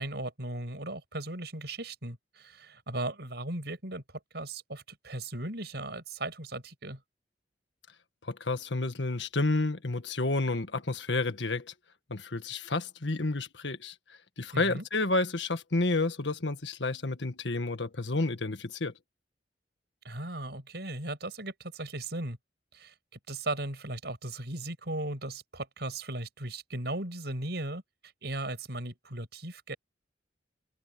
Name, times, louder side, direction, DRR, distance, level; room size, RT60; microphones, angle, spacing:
voice 1, 0.0-4.0 4.3-7.0 14.5-14.8 20.0-22.4 22.7-22.9 23.3-29.8, right 2 dB, 65° right, 7.4 m, -37 dB
voice 2, 8.2-11.7 12.1-13.9 14.4-18.9, left 2 dB, 85° left, 1.6 m, -30 dB
head